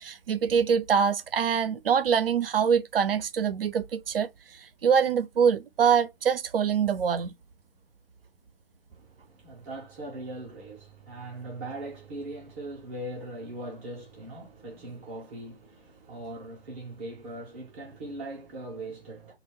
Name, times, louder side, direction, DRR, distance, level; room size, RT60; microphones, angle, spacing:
voice 1, 0.0-4.3 4.8-7.3, right 7 dB, 65° right, 0.5 m, -24 dB
voice 2, 8.9-19.3, right 1 dB, 15° right, 0.5 m, -40 dB
2.2 x 2.2 x 3.3 m
figure-of-eight pair, 130°, 31 cm